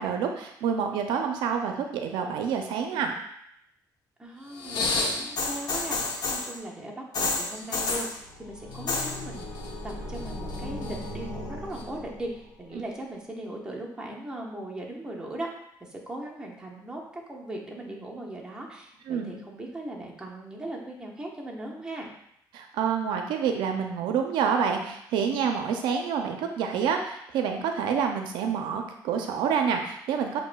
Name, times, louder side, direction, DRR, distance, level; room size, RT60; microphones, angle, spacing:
voice 1, 0.0-3.1 12.8-12.9 19.1-19.3 22.5-30.4, right 7 dB, 90° right, 4 dB, 0.4 m, -28 dB
voice 2, 4.2-9.5 9.8-15.5 15.8-22.1, right 1 dB, 10° right, -2 dB, 1.0 m, -38 dB
sound 1, 4.6-6.5 7.1-8.1 8.7-9.1 9.4-9.9 10.3-11.0 11.8-11.9, left 3 dB, 60° left, 0.8 m, -29 dB
sound 2, 8.0-12.7, left 1 dB, 85° left, 0.9 m, -38 dB
7.1 x 2.6 x 2.3 m, 0.75 s
cardioid pair, 90°, 8 cm